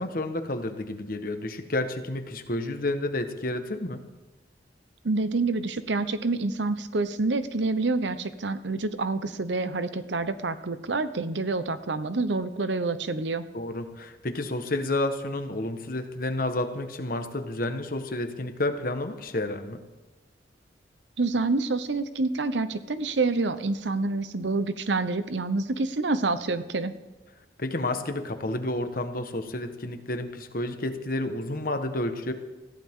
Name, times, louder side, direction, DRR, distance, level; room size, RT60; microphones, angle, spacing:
voice 1, 0.0-4.0 13.5-19.8 27.6-32.3, left 2 dB, 55° left, 7 dB, 1.4 m, -30 dB
voice 2, 5.0-13.4 21.2-26.9, right 3 dB, 90° right, 12 dB, 0.9 m, -27 dB
21.0 x 14.5 x 3.7 m, 1.1 s
head